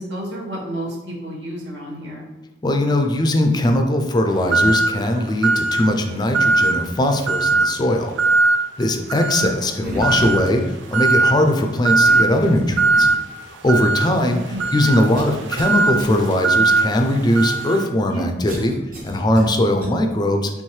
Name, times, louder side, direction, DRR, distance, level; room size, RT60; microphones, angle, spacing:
voice 1, 0.0-2.3 9.4-9.7 14.5-14.6 18.1-18.2, right 1 dB, 70° right, -2 dB, 1.1 m, -31 dB
voice 2, 2.6-8.1 8.8-13.1 13.5-18.8 19.0-20.6, left 1 dB, 25° left, 5 dB, 0.4 m, -20 dB
sound 1, 4.5-5.0 5.4-5.9 6.3-6.8 7.3-7.7 8.2-8.6 9.1-9.5 10.0-10.5 10.9-11.4 11.8-12.3 12.8-13.2 13.7-17.9, right 3 dB, 85° right, 0.5 m, -19 dB
sound 2, 9.8-10.5 12.0-13.3 14.0-14.1 15.1-15.7 16.0-16.1 18.5-19.9, equal, 50° right, 1.2 m, -33 dB
4.5 x 3.4 x 3.1 m, 1.1 s
head